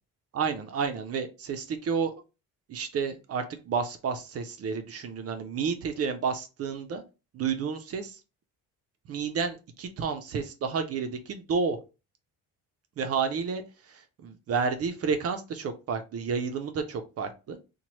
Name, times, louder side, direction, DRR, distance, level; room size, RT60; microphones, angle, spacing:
voice 1, 0.3-2.1 2.7-7.0 7.3-8.2 9.1-11.8 13.0-17.6, right 5 dB, 50° right, 6 dB, 0.4 m, -31 dB
2.9 x 2.1 x 3.0 m, 0.30 s
cardioid pair, 120°, 33 cm